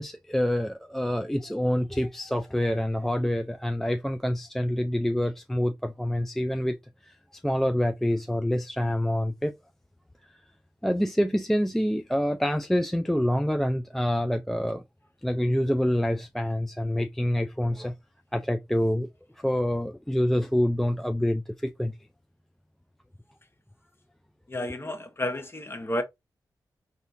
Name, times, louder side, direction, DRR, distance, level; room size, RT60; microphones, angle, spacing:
voice 1, 0.0-6.8 7.0-9.5 10.8-14.8 15.2-17.9 18.3-19.1 19.4-21.9, equal, 5° left, 0.3 m, -26 dB
voice 2, 24.5-26.0, left 1 dB, 30° left, 1.0 m, -31 dB
4.2 x 2.7 x 2.5 m
supercardioid pair, 45°, 8 cm